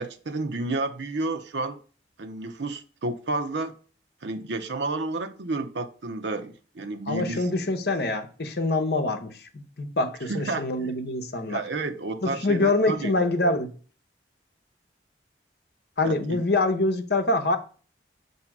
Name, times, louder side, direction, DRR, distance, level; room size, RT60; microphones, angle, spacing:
voice 1, 0.0-1.8 2.2-3.7 4.2-7.5 10.3-10.9 11.4-13.1 16.0-16.4, right 2 dB, 85° right, 0.7 m, -31 dB
voice 2, 7.1-11.6 12.2-13.7 16.0-17.6, left 2 dB, 65° left, 0.9 m, -25 dB
7.5 x 2.8 x 5.9 m
head